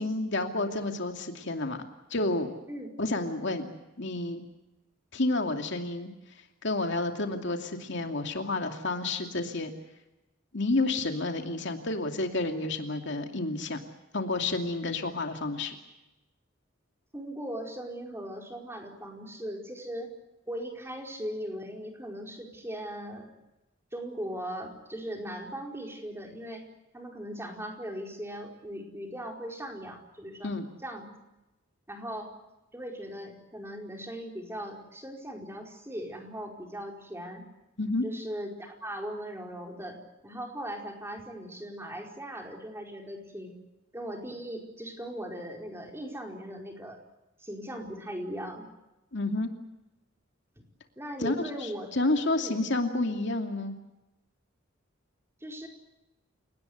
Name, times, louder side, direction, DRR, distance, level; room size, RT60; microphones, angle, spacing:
voice 1, 0.0-1.8 2.1-2.5 3.0-3.7 4.0-4.4 5.1-6.1 6.6-9.7 10.5-13.8 14.1-15.8 30.4-30.7 37.8-38.0 49.1-49.5 51.2-51.3 51.6-53.7, left 2 dB, 65° left, 5 dB, 2.6 m, -30 dB
voice 2, 17.1-20.1 20.5-23.3 23.9-26.6 26.9-30.5 30.8-31.1 31.9-32.3 32.7-37.4 38.0-43.5 43.9-47.0 47.4-48.7 51.0-51.9 52.3-52.6 55.4-55.7, equal, 15° right, 2 dB, 4.7 m, -39 dB
29.5 x 18.5 x 8.0 m, 0.98 s
head